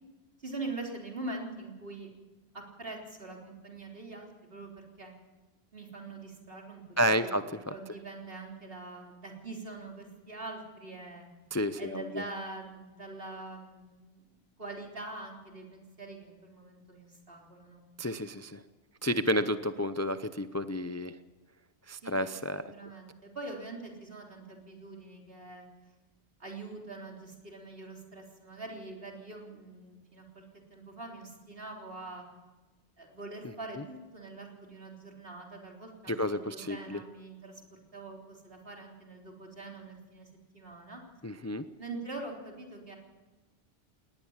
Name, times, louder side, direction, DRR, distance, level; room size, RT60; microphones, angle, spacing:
voice 1, 0.4-2.1 2.5-5.1 5.7-7.3 7.7-11.3 11.8-14.2 14.6-17.8 19.0-19.5 22.0-25.7 26.4-30.4 30.7-32.2 33.0-41.0 41.8-43.0, right 2 dB, 60° right, 0 dB, 4.0 m, -44 dB
voice 2, 7.0-7.7 11.5-12.2 18.0-18.6 19.0-21.1 21.9-22.7 36.1-37.0 41.2-41.7, equal, 20° left, 11 dB, 0.5 m, -31 dB
19.5 x 19.0 x 7.3 m, 1.2 s
omnidirectional pair, 1.1 m